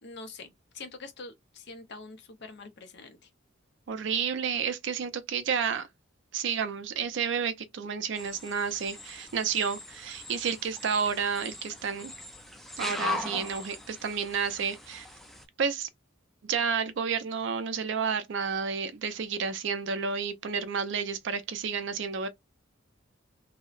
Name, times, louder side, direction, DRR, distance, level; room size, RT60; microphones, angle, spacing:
voice 1, 0.0-3.3, left 3 dB, 60° left, 0.6 m, -45 dB
voice 2, 3.9-5.9 6.3-12.1 12.8-15.1 15.6-15.9 16.4-22.3, right 6 dB, 65° right, 0.4 m, -31 dB
sound 1, 8.2-15.4, left 2 dB, ahead, 0.3 m, -40 dB
2.7 x 2.0 x 2.4 m
head